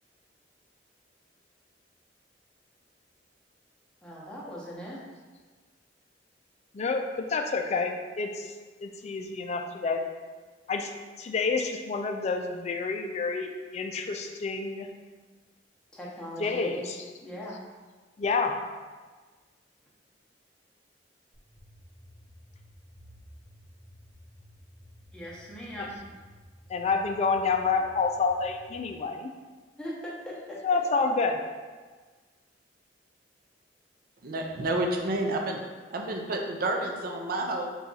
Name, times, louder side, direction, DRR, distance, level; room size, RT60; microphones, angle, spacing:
voice 1, 4.0-5.0 15.9-17.6 25.1-26.1 29.8-30.6, equal, 5° left, -6 dB, 0.8 m, -40 dB
voice 2, 6.7-8.5 8.8-10.1 10.7-10.9 11.2-14.9 16.4-17.1 18.2-18.6 25.8-25.9 26.7-29.3 30.6-31.4, left 4 dB, 40° left, 4 dB, 0.3 m, -28 dB
sound 1, 21.3-28.7, equal, 35° right, 1.0 m, -53 dB
voice 3, 34.2-35.6 35.9-37.7, right 2 dB, 55° right, 2 dB, 0.5 m, -29 dB
4.0 x 2.4 x 3.9 m, 1.4 s
head